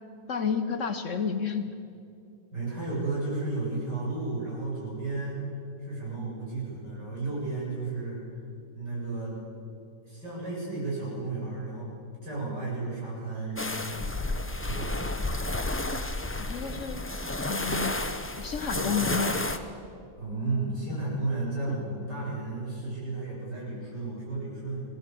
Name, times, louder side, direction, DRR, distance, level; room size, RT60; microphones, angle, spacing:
voice 1, 0.3-1.7 16.4-17.0 17.5-18.0 18.4-19.4 21.7-21.8, left 6 dB, 50° left, 7 dB, 1.2 m, -30 dB
voice 2, 2.5-5.4 5.8-8.2 8.7-9.3 10.0-11.9 12.2-14.1 14.6-15.1 20.2-24.8, right 3 dB, 75° right, -6 dB, 8.4 m, -33 dB
sound 1, 13.6-19.6, left 2 dB, 15° left, 0.4 m, -31 dB
22.5 x 17.0 x 7.7 m, 2.5 s
omnidirectional pair, 1.8 m